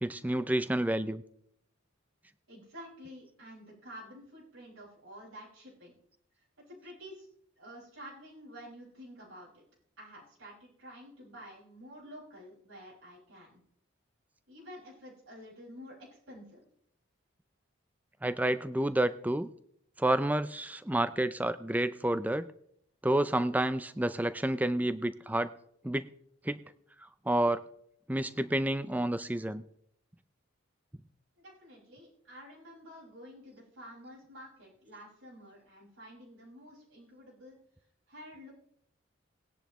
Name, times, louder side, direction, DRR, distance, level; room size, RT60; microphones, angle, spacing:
voice 1, 0.0-1.2 18.2-19.5 20.0-22.5 23.0-25.5 25.8-26.1 26.5-26.6 27.3-27.6 28.1-29.6, right 1 dB, 10° right, 13 dB, 0.4 m, -29 dB
voice 2, 2.5-5.9 6.4-7.3 7.6-9.6 10.0-13.6 14.5-16.7 31.4-37.6 38.1-38.5, equal, 85° right, -6 dB, 5.8 m, -50 dB
19.5 x 10.5 x 3.1 m, 0.69 s
head